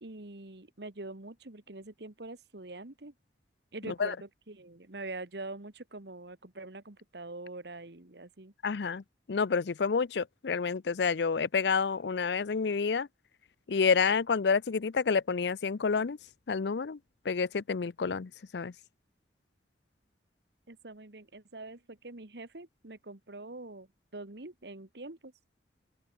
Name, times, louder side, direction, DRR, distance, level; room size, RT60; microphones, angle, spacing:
voice 1, 0.0-3.1 3.7-8.5 20.7-23.9 24.1-25.3, right 2 dB, 65° right, 1.6 m, -44 dB
voice 2, 8.6-9.0 9.3-13.1 13.7-16.2 16.5-17.0 17.2-18.7, left 5 dB, 70° left, 0.5 m, -29 dB
open air
head